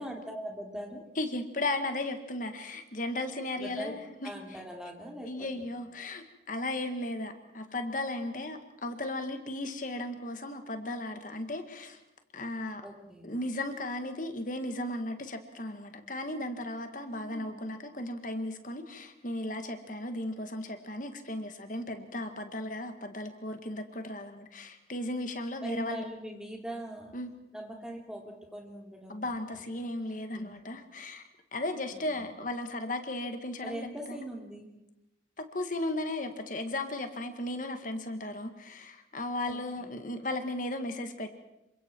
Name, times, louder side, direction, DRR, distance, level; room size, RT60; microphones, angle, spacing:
voice 1, 0.0-1.0 3.6-3.9 4.2-5.6 12.8-13.3 17.1-17.7 25.6-27.2 27.5-29.9 30.3-30.6 31.9-32.3 33.6-34.7 39.5-40.0, right 1 dB, 5° right, 0 dB, 3.4 m, -42 dB
voice 2, 1.2-4.3 5.2-12.0 12.3-12.8 13.2-26.1 27.1-27.3 29.1-31.2 31.5-34.2 35.4-41.3, left 1 dB, 45° left, 7 dB, 1.8 m, -36 dB
28.0 x 24.5 x 4.6 m, 0.92 s
head